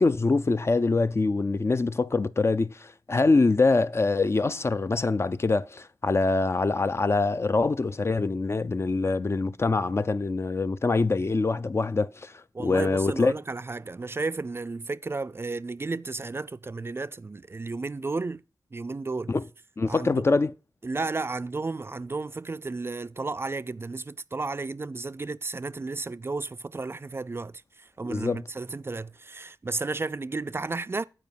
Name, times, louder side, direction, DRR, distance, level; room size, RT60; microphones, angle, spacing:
voice 1, 0.0-12.3 12.6-13.3 19.3-19.5 19.8-20.5 28.0-28.4, left 3 dB, 35° left, 0.4 m, -24 dB
voice 2, 12.5-18.4 18.7-19.3 19.9-20.2 20.8-27.5 28.0-31.0, right 3 dB, 30° right, 0.4 m, -33 dB
9.5 x 4.9 x 6.9 m
wide cardioid pair, 115°, 8 cm